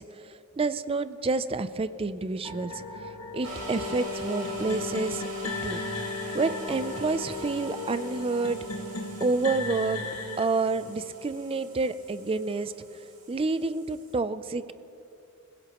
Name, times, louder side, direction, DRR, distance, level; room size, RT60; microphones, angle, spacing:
voice 1, 0.0-2.8 3.3-5.2 5.6-5.8 6.3-8.6 9.2-10.1 10.4-12.7 13.3-14.7, right 3 dB, 25° right, 13 dB, 0.4 m, -29 dB
sound 1, 2.4-10.5, left 2 dB, 85° left, 1.5 m, -38 dB
sound 2, 3.4-14.1, left 2 dB, 65° right, 4.6 m, -39 dB
27.0 x 16.5 x 3.0 m, 2.7 s
head